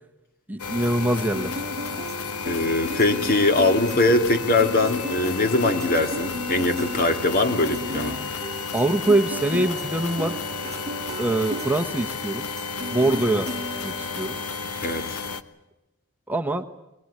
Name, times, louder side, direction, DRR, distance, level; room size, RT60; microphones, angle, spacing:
voice 1, 0.5-1.5 8.7-10.3 11.2-12.4 12.9-13.5 13.8-14.4 16.3-16.6, right 2 dB, 10° right, 5 dB, 1.1 m, -23 dB
sound 1, 0.6-15.4, left 5 dB, 85° left, 1.3 m, -32 dB
sound 2, 1.3-14.5, right 1 dB, 30° right, 1.3 m, -36 dB
voice 2, 2.4-8.2 14.8-15.1, left 2 dB, 40° left, 6 dB, 2.4 m, -22 dB
23.5 x 21.0 x 9.7 m, 0.92 s
head